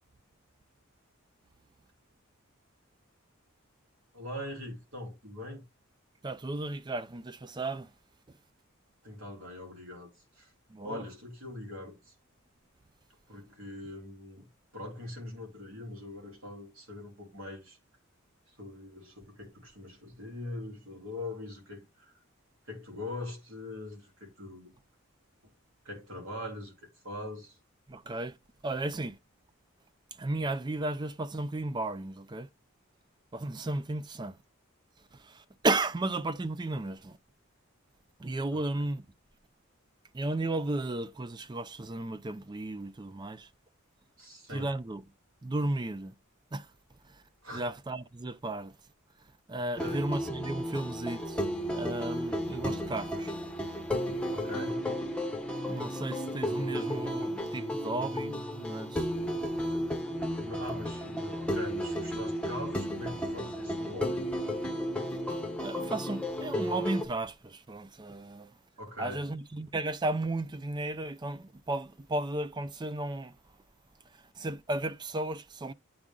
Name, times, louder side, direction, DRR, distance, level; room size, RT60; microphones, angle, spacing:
voice 1, 4.1-5.6 9.0-10.5 10.8-12.1 13.3-14.5 14.7-17.8 18.6-22.1 22.6-24.7 25.8-26.8 27.0-27.6 38.5-38.6 44.2-44.7 47.4-47.7 49.7-50.0 54.3-54.8 60.4-64.3 65.8-65.9 68.8-69.2, left 1 dB, 65° right, 3.2 m, -42 dB
voice 2, 6.2-7.9 10.7-11.0 27.9-28.4 28.6-29.2 30.2-32.5 33.3-34.4 35.1-37.2 38.2-39.0 40.1-43.5 44.5-45.0 45.4-46.1 46.5-46.7 47.1-47.2 47.5-48.7 49.5-51.4 51.7-53.3 55.7-59.1 65.3-68.5 69.0-73.3 74.4-75.7, right 2 dB, 20° right, 0.4 m, -34 dB
sound 1, 49.8-67.1, equal, 5° left, 1.0 m, -33 dB
8.7 x 3.6 x 3.8 m
head